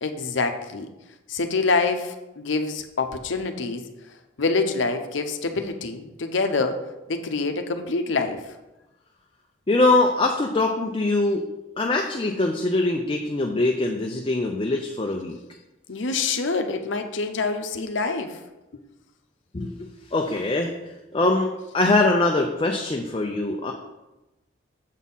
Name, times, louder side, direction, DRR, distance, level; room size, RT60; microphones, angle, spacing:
voice 1, 0.0-0.9 1.3-3.8 4.4-8.4 15.9-18.4, left 3 dB, 70° left, 7 dB, 0.7 m, -26 dB
voice 2, 9.7-11.4 11.8-15.4 19.5-20.7 21.1-23.7, left 2 dB, 25° left, 2 dB, 0.5 m, -23 dB
7.2 x 4.3 x 5.5 m, 1.0 s
head